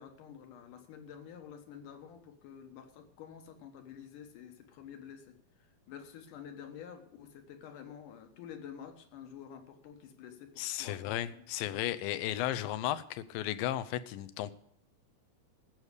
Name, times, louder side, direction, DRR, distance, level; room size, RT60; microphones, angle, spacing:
voice 1, 0.0-5.4 5.9-11.4 12.2-12.3, left 8 dB, 70° left, 6 dB, 2.7 m, -49 dB
voice 2, 10.6-14.5, left 13 dB, 90° left, 12 dB, 2.5 m, -34 dB
14.5 x 6.7 x 8.1 m, 0.66 s
omnidirectional pair, 4.0 m